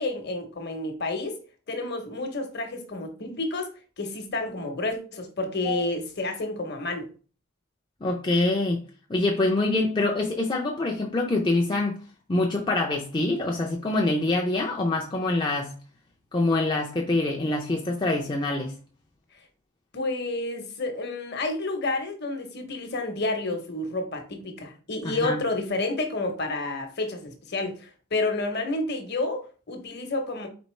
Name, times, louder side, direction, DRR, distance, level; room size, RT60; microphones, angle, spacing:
voice 1, 0.0-1.4 1.7-3.7 4.0-7.1 19.9-30.5, left 2 dB, 50° left, 0.9 m, -30 dB
voice 2, 8.0-8.8 9.1-12.0 12.3-15.7 16.3-18.7 25.0-25.4, left 2 dB, 20° left, 0.4 m, -25 dB
4.2 x 3.7 x 3.2 m
head